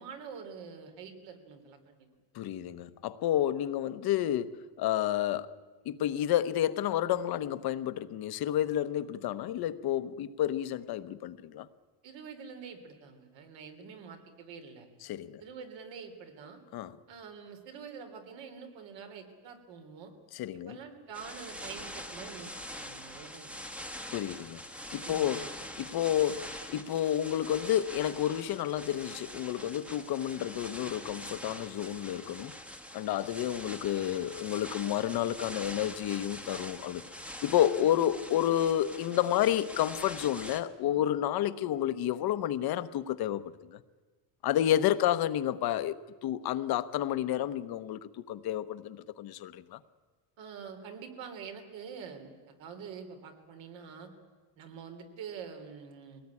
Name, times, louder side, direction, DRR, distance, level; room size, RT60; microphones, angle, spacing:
voice 1, 0.0-2.1 12.0-14.9 15.4-16.6 17.1-20.1 20.5-23.5 25.0-25.5 50.4-54.1 54.6-56.2, right 6 dB, 70° right, 3.5 m, -46 dB
voice 2, 2.3-5.5 5.8-11.7 15.0-15.4 16.7-17.0 20.3-20.8 24.1-24.6 24.9-25.4 25.8-32.5 32.9-37.0 37.4-43.8 44.4-46.0 46.2-49.8, left 11 dB, 50° left, 1.0 m, -30 dB
sound 1, 21.1-40.6, equal, 5° right, 1.1 m, -44 dB
22.5 x 18.5 x 9.8 m
cardioid pair, 160°, 47 cm